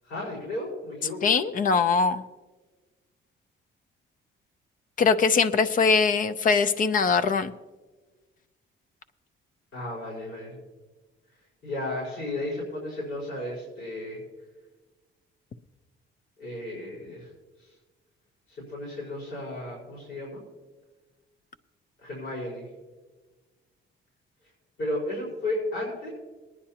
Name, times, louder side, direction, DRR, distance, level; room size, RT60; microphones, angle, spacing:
voice 1, 0.0-1.4 9.7-10.6 11.6-14.2 16.4-17.3 18.5-20.4 22.0-22.7 24.8-26.1, left 1 dB, 75° left, -7 dB, 4.9 m, -34 dB
voice 2, 1.2-2.3 5.0-7.5, left 5 dB, 40° left, 12 dB, 0.5 m, -22 dB
21.5 x 9.9 x 2.9 m, 1.3 s
cardioid pair, 145°, 20 cm